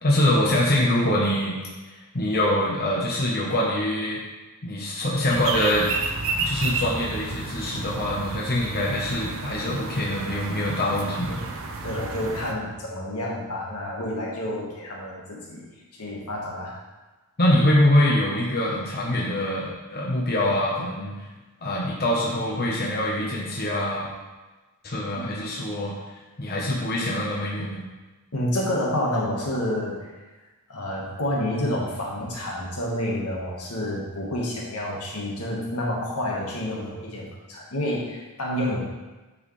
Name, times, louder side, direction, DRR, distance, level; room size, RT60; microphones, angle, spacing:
voice 1, 0.0-1.6 1.9-4.2 4.6-5.9 6.4-11.4 17.4-21.3 21.6-24.1 24.8-25.9 26.4-27.8, left 1 dB, 45° left, -4 dB, 1.1 m, -24 dB
sound 1, 5.3-12.5, right 3 dB, 60° right, 0.6 m, -31 dB
voice 2, 11.8-15.7 16.0-16.8 25.1-25.3 28.3-30.0 30.7-38.8, left 1 dB, 85° left, -3 dB, 1.6 m, -29 dB
8.5 x 4.9 x 3.3 m, 1.2 s
head